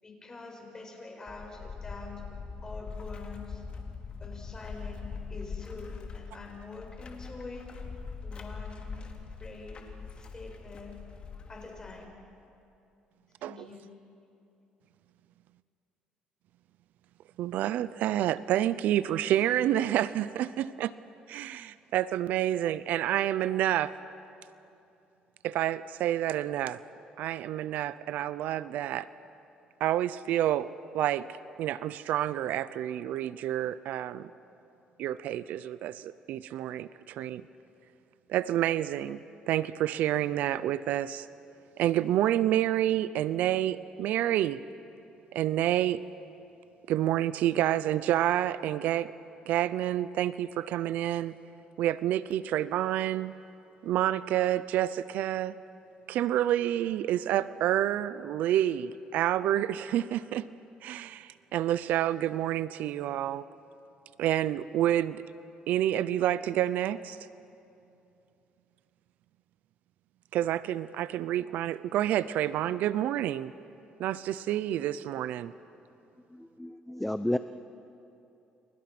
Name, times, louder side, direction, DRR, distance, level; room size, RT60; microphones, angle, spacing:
voice 1, 0.0-3.7 4.2-7.7 8.2-11.0 11.5-12.1 13.4-13.9, left 3 dB, 25° left, 1 dB, 7.1 m, -45 dB
sound 1, 1.3-12.1, left 5 dB, 40° left, 2.8 m, -42 dB
voice 2, 17.4-20.9 21.3-23.9 25.4-26.8 27.2-29.1 29.8-31.3 31.6-34.3 35.0-37.5 38.3-39.2 39.5-41.3 41.8-44.6 45.3-46.0 46.9-49.1 49.5-51.3 51.8-53.3 53.8-55.6 56.1-60.5 60.8-63.5 64.2-65.2 65.7-67.2 70.3-73.5 74.0-75.5, right 12 dB, 75° right, 16 dB, 0.6 m, -28 dB
voice 3, 76.6-77.4, left 1 dB, 5° left, 10 dB, 0.7 m, -30 dB
29.5 x 29.0 x 6.1 m, 2.8 s
cardioid pair, 105°, 3 cm